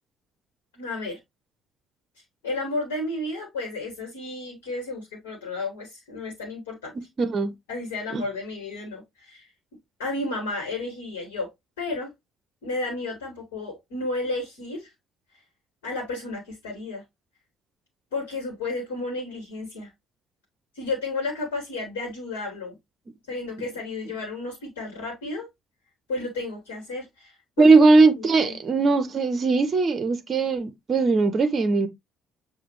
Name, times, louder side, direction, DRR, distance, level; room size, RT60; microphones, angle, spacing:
voice 1, 0.7-1.2 2.4-6.9 7.7-9.5 10.0-11.5 11.8-12.1 12.6-14.9 15.8-17.0 18.1-19.9 20.7-22.7 23.3-25.5 26.1-27.7 28.2-28.6, left 2 dB, 70° left, 1.3 m, -32 dB
voice 2, 7.2-7.5 8.1-8.2 27.6-31.9, right 3 dB, 35° right, 0.6 m, -19 dB
6.7 x 2.3 x 3.0 m
figure-of-eight pair, 50°, 0 cm